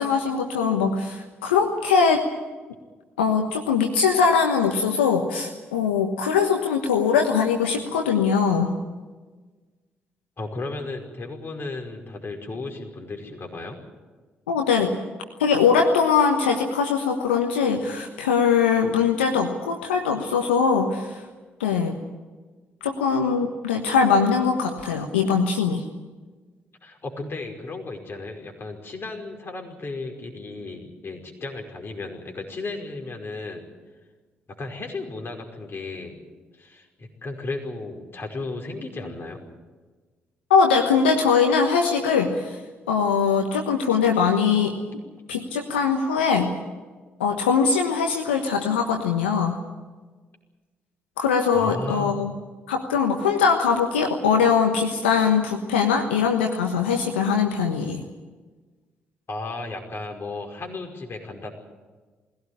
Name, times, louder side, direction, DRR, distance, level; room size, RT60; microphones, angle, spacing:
voice 1, 0.0-2.2 3.2-8.8 14.5-15.0 15.4-21.2 21.6-22.0 22.8-25.8 40.5-42.6 42.9-44.8 45.3-46.5 47.2-49.6 51.2-52.3 52.7-58.0, left 6 dB, 85° left, 4 dB, 1.2 m, -21 dB
voice 2, 10.4-13.8 26.8-33.6 34.6-36.2 36.5-39.4 51.5-52.3 59.3-61.5, left 3 dB, 40° left, 2 dB, 5.3 m, -34 dB
21.0 x 17.0 x 9.8 m, 1.3 s
hypercardioid pair, 45°, 6 cm